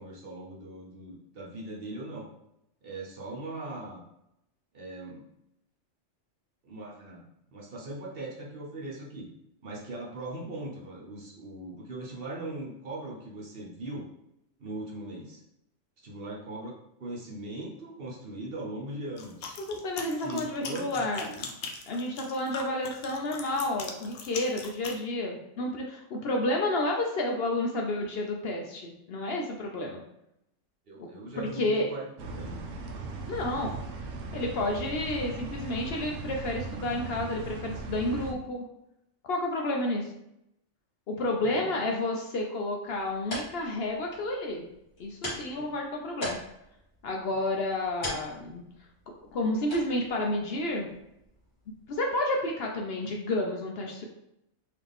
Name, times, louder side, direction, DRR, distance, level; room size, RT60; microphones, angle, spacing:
voice 1, 0.0-2.3 2.8-4.0 4.7-5.3 6.6-7.2 7.5-9.3 9.6-14.1 14.6-15.4 16.0-19.6 20.2-21.6 30.9-32.6 41.1-41.8 45.5-45.7, right 2 dB, 50° right, -3 dB, 1.0 m, -40 dB
sound 1, 19.2-25.0, left 5 dB, 90° left, 1.0 m, -40 dB
voice 2, 19.7-21.3 21.9-30.0 31.0-31.1 31.4-31.9 33.3-33.8 34.3-38.6 39.2-40.1 41.1-44.7 45.0-46.4 47.0-48.6 49.2-50.9 51.9-54.0, left 1 dB, 60° left, 1 dB, 0.7 m, -30 dB
sound 2, 32.2-38.3, right 3 dB, 80° right, 1.0 m, -38 dB
sound 3, 42.8-52.1, left 1 dB, 40° left, 1.7 m, -43 dB
4.1 x 2.8 x 3.4 m, 0.81 s
omnidirectional pair, 1.3 m